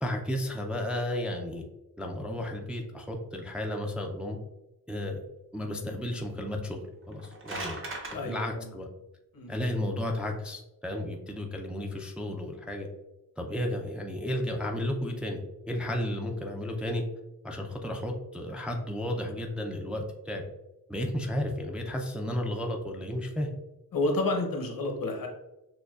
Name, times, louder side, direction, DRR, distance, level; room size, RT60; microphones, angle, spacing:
voice 1, 0.0-1.6 2.0-4.4 4.9-5.2 5.5-6.8 7.1-7.8 8.1-8.9 9.5-12.9 13.4-17.0 17.4-20.4 20.9-23.5, left 1 dB, 5° right, 2 dB, 0.3 m, -33 dB
voice 2, 5.5-6.0 8.1-8.7 9.3-9.5 23.9-25.3, left 2 dB, 70° left, 2 dB, 0.8 m, -31 dB
sound 1, 7.0-8.2, right 2 dB, 35° right, 0.7 m, -37 dB
6.3 x 2.2 x 2.3 m, 0.96 s
wide cardioid pair, 130°, 35 cm